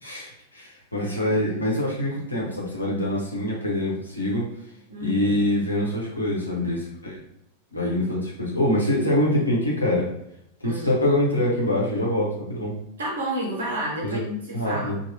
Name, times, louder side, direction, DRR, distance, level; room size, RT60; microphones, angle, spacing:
voice 1, 0.0-4.5 5.0-7.2 7.7-10.1 10.6-12.8 14.0-14.2 14.5-15.0, left 1 dB, 85° left, -4 dB, 0.9 m, -24 dB
voice 2, 0.9-1.4 4.9-5.5 10.6-11.0 13.0-15.0, equal, 70° right, -3 dB, 1.0 m, -31 dB
2.9 x 2.8 x 2.7 m, 0.77 s
figure-of-eight pair, 90°, 0 cm